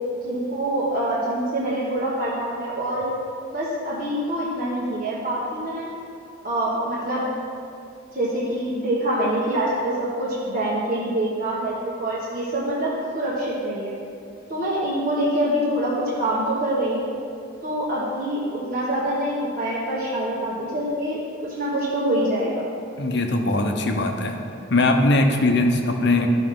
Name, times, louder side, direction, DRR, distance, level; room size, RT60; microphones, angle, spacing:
voice 1, 0.2-3.1 3.5-5.9 6.4-7.3 8.1-13.9 14.5-17.1 17.6-22.6, right 1 dB, 45° right, -8 dB, 1.3 m, -25 dB
voice 2, 23.0-24.4 24.7-26.3, left 2 dB, 55° left, 4 dB, 0.8 m, -20 dB
12.5 x 5.9 x 3.7 m, 2.5 s
head